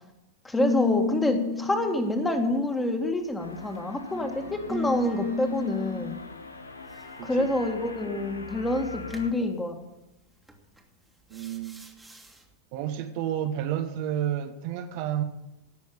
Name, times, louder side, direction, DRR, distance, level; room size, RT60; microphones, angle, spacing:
voice 1, 0.4-6.2 7.2-9.8, left 2 dB, 10° left, 4 dB, 2.1 m, -27 dB
sound 1, 0.6-3.4 4.1-6.2 9.1-9.3 10.5-10.8 11.3-12.3, left 2 dB, 5° right, 1.9 m, -32 dB
sound 2, 3.4-9.3, left 4 dB, 75° left, 1.1 m, -43 dB
voice 2, 7.2-7.5 11.3-11.8 12.7-15.2, right 11 dB, 45° right, 7 dB, 1.1 m, -30 dB
17.0 x 6.4 x 8.6 m, 0.90 s
figure-of-eight pair, 90°, 0 cm